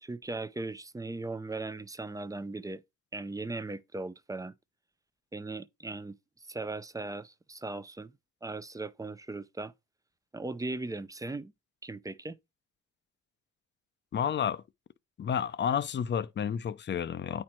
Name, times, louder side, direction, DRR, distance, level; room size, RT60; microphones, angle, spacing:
voice 1, 0.0-2.8 3.1-4.5 5.3-6.2 6.5-8.1 8.4-9.7 10.3-11.5 11.8-12.4, right 2 dB, 10° right, 0.5 m, -38 dB
voice 2, 14.1-14.6 15.2-17.4, left 8 dB, 35° left, 0.5 m, -30 dB
8.6 x 4.4 x 4.4 m
cardioid pair, 90°, 30 cm